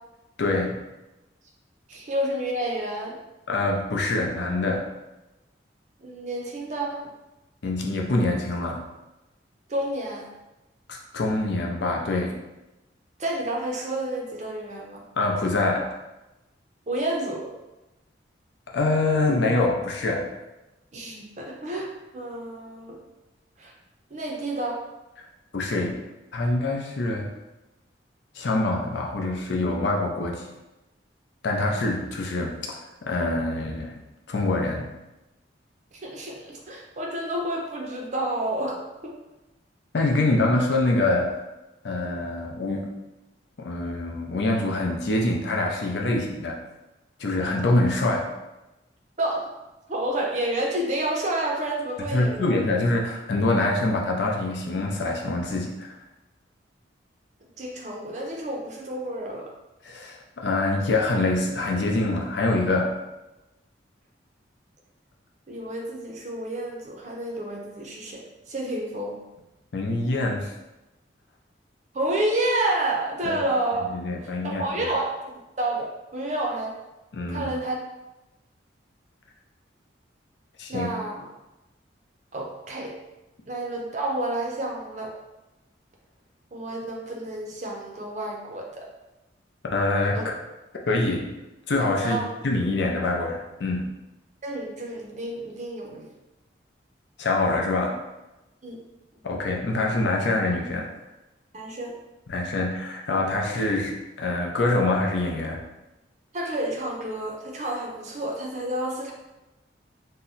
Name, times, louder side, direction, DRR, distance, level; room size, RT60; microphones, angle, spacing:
voice 1, 0.4-0.8 3.5-4.8 7.6-8.8 10.9-12.3 15.2-15.9 18.7-20.3 25.5-26.0 26.3-27.3 28.3-30.5 31.4-32.8 33.1-33.9 34.3-34.9 39.9-41.4 41.8-42.9 43.6-46.6 47.2-48.3 52.1-55.9 59.8-62.9 69.7-70.5 73.2-73.4 73.9-74.9 77.1-77.5 80.6-80.9 89.6-90.2 90.9-91.3 91.7-94.0 97.2-98.0 99.2-100.9 102.3-105.6, left 2 dB, 65° left, 0 dB, 0.5 m, -25 dB
voice 2, 1.9-3.2 6.0-7.1 9.7-10.3 13.2-15.0 16.9-17.5 20.9-23.0 23.6-23.7 24.1-24.8 35.9-39.2 49.2-49.5 49.9-52.5 57.6-59.5 65.5-69.2 71.9-73.9 74.4-75.1 75.6-76.8 77.3-77.8 80.7-81.3 82.3-83.0 83.5-85.1 86.5-88.9 90.1-90.2 92.0-92.3 94.4-96.1 98.6-98.8 101.5-101.9 106.3-109.1, right 1 dB, 40° right, -1 dB, 0.5 m, -29 dB
2.7 x 2.1 x 3.8 m, 1.0 s
head